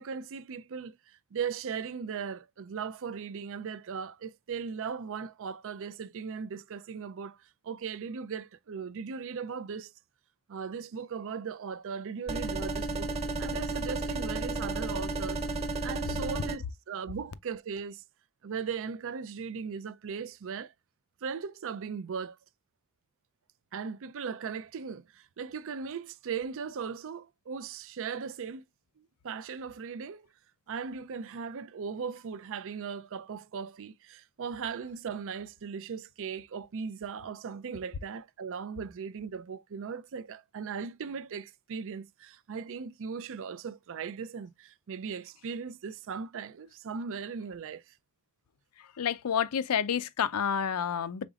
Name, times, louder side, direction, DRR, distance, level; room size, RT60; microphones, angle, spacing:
voice 1, 0.0-9.9 10.5-13.1 13.4-15.4 15.8-18.0 18.4-20.7 21.2-22.4 23.7-28.6 29.0-30.3 30.7-47.9, right 6 dB, 60° right, 0.4 m, -38 dB
sound 1, 12.3-16.6, right 2 dB, 30° right, 1.1 m, -33 dB
voice 2, 49.0-51.3, left 8 dB, 85° left, 0.5 m, -29 dB
5.2 x 4.0 x 2.3 m
head